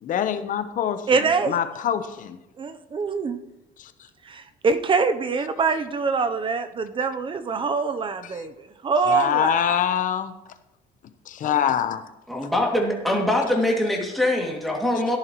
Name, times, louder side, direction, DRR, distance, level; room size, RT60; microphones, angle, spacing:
voice 1, 0.0-2.4 3.8-3.9 8.2-8.4 9.1-10.3 11.3-12.0, left 9 dB, 45° left, 0.9 m, -25 dB
voice 2, 1.1-1.6 2.6-3.4 4.3-8.5 8.8-9.7, right 4 dB, 30° right, 0.7 m, -24 dB
voice 3, 12.3-15.2, left 1 dB, ahead, 2.3 m, -23 dB
13.5 x 10.5 x 3.1 m
cardioid pair, 130°, 18 cm